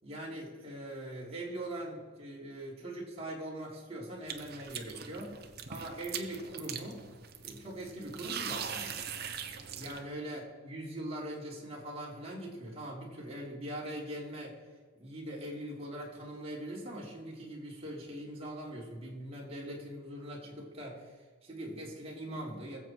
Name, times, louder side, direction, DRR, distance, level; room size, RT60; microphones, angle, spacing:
voice 1, 0.0-5.3 5.7-7.0 7.4-9.0 9.7-14.6 14.9-22.8, right 1 dB, 25° right, -4 dB, 3.3 m, -42 dB
sound 1, 4.3-10.0, right 7 dB, 45° right, 1.1 m, -41 dB
21.0 x 7.9 x 4.6 m, 1.5 s
head